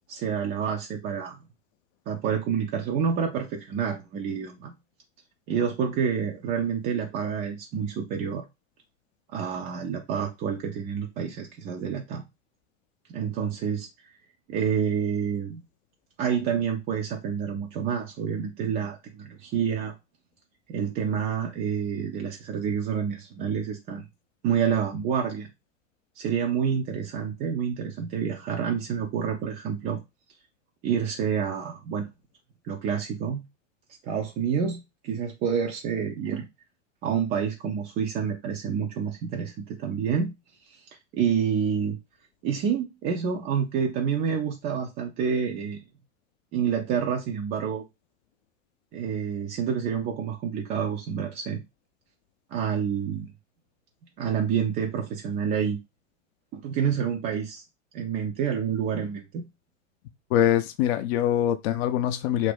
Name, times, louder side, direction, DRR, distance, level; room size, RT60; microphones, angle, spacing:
voice 1, 0.1-1.4 2.1-4.7 5.5-8.4 9.3-12.2 13.1-14.1 14.5-15.6 16.2-19.9 20.7-24.1 24.4-25.5 26.2-30.0 30.8-32.1 32.6-33.4 34.0-36.5 37.0-40.3 40.7-40.8 41.1-42.0 42.4-45.8 46.5-47.8 48.9-51.6 52.5-53.3 54.2-55.8 56.5-57.6 57.9-59.4, right 7 dB, 25° right, 0.3 m, -28 dB
voice 2, 60.3-62.5, left 11 dB, 55° left, 0.4 m, -23 dB
2.6 x 2.5 x 3.4 m
hypercardioid pair, 100°, 39 cm